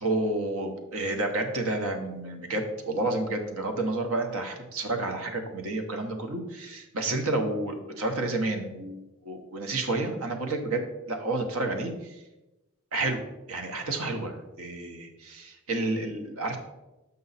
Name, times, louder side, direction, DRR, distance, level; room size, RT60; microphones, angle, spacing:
voice 1, 0.0-9.0 9.2-12.1 12.9-13.2 13.5-16.6, right 2 dB, 75° right, 5 dB, 1.0 m, -30 dB
7.0 x 5.4 x 4.1 m, 1.0 s
head